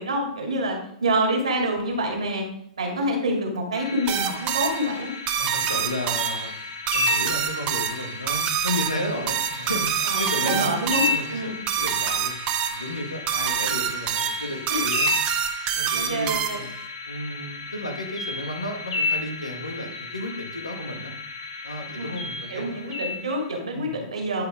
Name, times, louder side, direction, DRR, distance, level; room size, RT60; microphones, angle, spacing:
voice 1, 0.0-2.5 2.8-5.1 10.0-11.6 14.7-14.8 15.9-16.6 21.9-22.2 22.5-24.4, right 1 dB, 75° right, 1 dB, 2.6 m, -27 dB
sound 1, 3.7-23.6, left 4 dB, 65° left, 1.9 m, -33 dB
sound 2, 4.1-16.8, right 9 dB, 35° right, 0.9 m, -27 dB
voice 2, 5.4-6.6 6.9-12.3 12.7-15.2 15.7-16.7 17.1-21.1 21.6-22.8 23.7-24.0, left 1 dB, 85° left, 4 dB, 1.6 m, -33 dB
11.0 x 4.9 x 3.5 m, 0.68 s
figure-of-eight pair, 105°, 3 cm